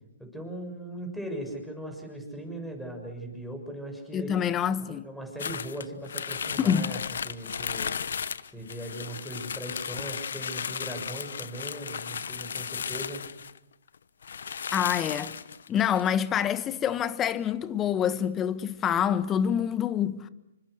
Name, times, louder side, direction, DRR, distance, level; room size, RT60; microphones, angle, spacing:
voice 1, 0.2-4.3 4.9-7.0 7.2-7.9 8.5-13.2, right 1 dB, ahead, 6.7 m, -39 dB
voice 2, 4.1-5.1 6.6-6.9 14.7-15.3 15.7-20.3, left 9 dB, 20° left, 1.4 m, -26 dB
sound 1, 5.4-13.6 13.9-14.0 14.2-16.1, left 7 dB, 70° left, 1.1 m, -35 dB
28.0 x 24.5 x 6.7 m
hypercardioid pair, 130°, 0 cm